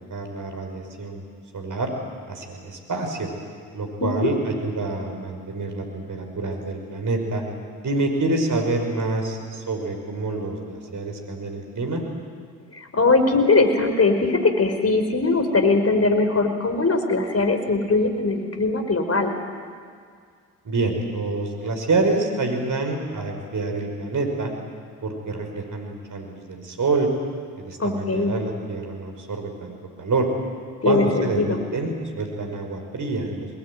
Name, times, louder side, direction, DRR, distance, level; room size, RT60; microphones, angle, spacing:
voice 1, 0.1-1.2 1.5-1.9 2.3-3.3 3.7-7.4 7.8-12.0 20.6-24.5 25.0-27.1 27.6-30.3 30.8-33.5, right 3 dB, 40° right, 3 dB, 5.8 m, -27 dB
voice 2, 12.7-19.3 27.8-28.3 30.8-31.6, left 3 dB, 30° left, 6 dB, 5.1 m, -21 dB
27.0 x 20.5 x 9.6 m, 2.1 s
hypercardioid pair, 50°, 46 cm